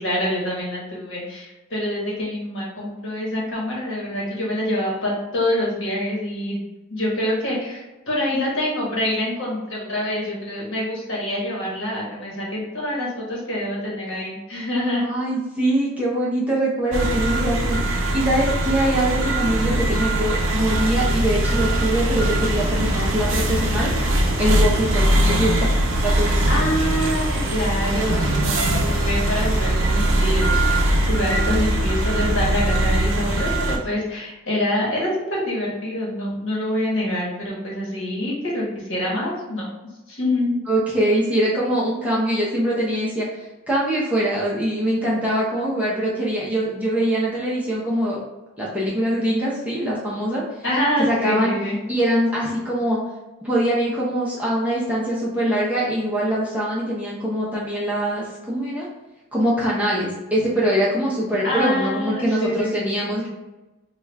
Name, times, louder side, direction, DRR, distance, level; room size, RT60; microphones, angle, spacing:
voice 1, 0.0-6.6 6.9-15.1 25.3-25.4 26.5-39.7 40.1-40.6 50.6-51.8 61.4-63.1, left 1 dB, 60° left, -4 dB, 1.1 m, -26 dB
voice 2, 15.0-25.7 26.0-26.4 31.5-31.6 40.7-43.3 43.7-48.2 48.6-50.4 51.0-51.5 51.9-53.0 53.4-58.9 59.3-63.3, right 1 dB, 5° right, -7 dB, 0.6 m, -23 dB
sound 1, 16.9-33.8, right 1 dB, 65° right, 0.5 m, -21 dB
sound 2, 21.4-32.5, equal, 85° left, 0.8 m, -31 dB
3.0 x 2.3 x 3.3 m, 1.0 s
head